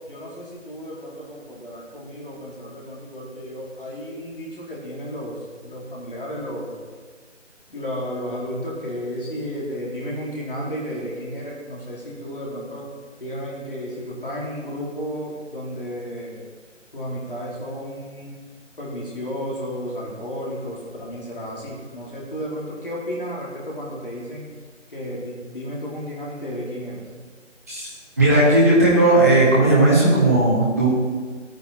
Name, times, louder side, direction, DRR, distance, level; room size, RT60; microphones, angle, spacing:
voice 1, 0.0-6.7 7.7-12.9 13.2-16.4 16.9-18.3 18.8-24.4 24.9-27.0, equal, 45° left, -5 dB, 3.7 m, -33 dB
voice 2, 28.2-30.9, right 2 dB, 15° right, -8 dB, 1.7 m, -16 dB
14.5 x 9.4 x 4.3 m, 1.5 s
figure-of-eight pair, 170°, 37 cm